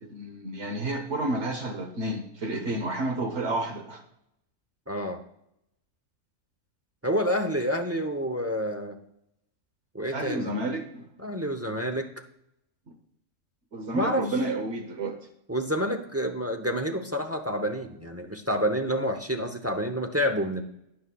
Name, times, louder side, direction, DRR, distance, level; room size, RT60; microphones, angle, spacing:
voice 1, 0.0-4.0 10.1-11.1 12.9-13.0 13.7-15.2, right 2 dB, 65° right, 5 dB, 1.2 m, -30 dB
voice 2, 4.9-5.2 7.0-9.0 9.9-10.5 11.2-12.1 13.9-14.3 15.5-20.6, equal, 15° right, 4 dB, 0.5 m, -28 dB
12.5 x 9.5 x 2.3 m, 0.79 s
omnidirectional pair, 1.3 m